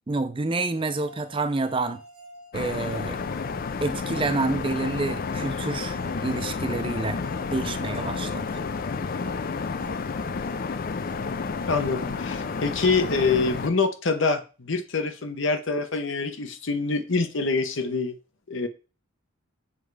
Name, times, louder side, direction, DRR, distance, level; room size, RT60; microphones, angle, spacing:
voice 1, 0.1-2.0 2.5-3.2 3.8-7.2 7.5-8.4, right 3 dB, 25° right, 0.4 m, -28 dB
sound 1, 0.7-13.7, equal, 85° right, 1.0 m, -47 dB
sound 2, 2.5-13.7, left 4 dB, 40° left, 0.4 m, -31 dB
voice 2, 11.7-18.2 18.5-18.7, left 4 dB, 60° left, 0.9 m, -25 dB
7.3 x 3.3 x 4.7 m
head